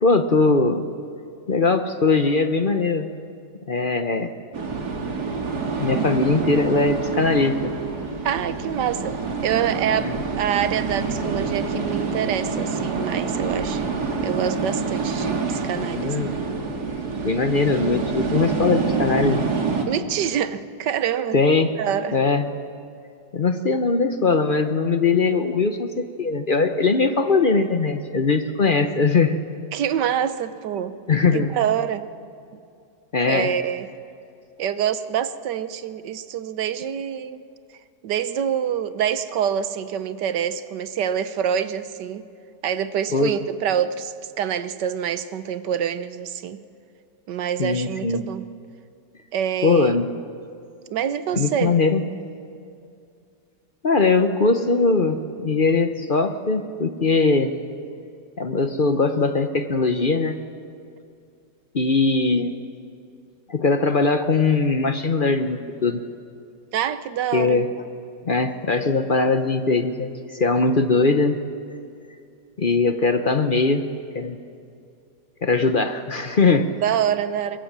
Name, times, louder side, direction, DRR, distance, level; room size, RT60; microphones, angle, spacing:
voice 1, 0.0-0.8 1.5-3.1 3.7-4.3 5.8-7.7 10.0-10.2 15.8-16.4 17.2-19.4 21.3-21.7 22.1-22.5 23.3-29.4 31.1-31.5 33.1-33.5 43.1-43.3 47.6-48.2 49.6-50.1 51.4-52.0 53.8-57.6 58.4-60.4 61.7-62.5 63.5-66.0 67.3-67.7 68.2-71.4 72.6-73.8 74.1-74.4 75.4-76.7, left 3 dB, 40° left, 8 dB, 0.7 m, -20 dB
sound 1, 4.5-19.9, right 4 dB, 65° right, 2.5 m, -27 dB
voice 2, 8.2-13.8 14.2-16.2 19.9-21.4 21.8-22.2 29.7-31.0 31.3-32.1 33.2-33.9 34.6-37.4 38.0-42.3 42.6-46.6 47.3-48.5 49.3-49.9 50.9-51.7 66.7-67.6 76.8-77.6, right 9 dB, 80° right, 13 dB, 1.5 m, -26 dB
23.0 x 22.0 x 7.4 m, 2.5 s
omnidirectional pair, 1.8 m